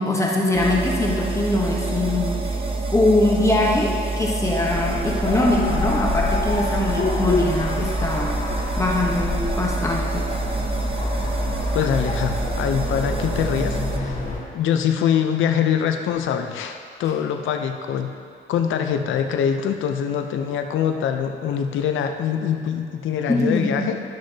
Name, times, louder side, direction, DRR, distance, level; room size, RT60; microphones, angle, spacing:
voice 1, 0.0-2.4 2.9-10.3 23.3-23.9, left 1 dB, 15° left, -3 dB, 1.1 m, -22 dB
sound 1, 0.5-14.0, right 3 dB, 25° right, 0.8 m, -27 dB
sound 2, 4.6-14.4, left 3 dB, 40° left, 2.2 m, -28 dB
voice 2, 11.7-14.2 14.5-18.1 18.5-24.0, left 8 dB, 80° left, 6 dB, 0.7 m, -24 dB
13.0 x 6.4 x 2.8 m, 2.5 s
cardioid pair, 90°, 20 cm